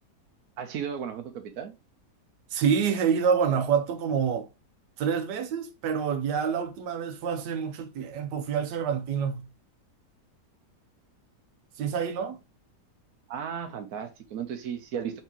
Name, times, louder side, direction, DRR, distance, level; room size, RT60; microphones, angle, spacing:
voice 1, 0.6-1.7 13.3-15.2, right 8 dB, 65° right, 1.1 m, -35 dB
voice 2, 2.5-4.5 5.0-9.5 11.8-12.4, right 7 dB, 85° right, 1.2 m, -27 dB
4.5 x 4.2 x 2.8 m
omnidirectional pair, 1.8 m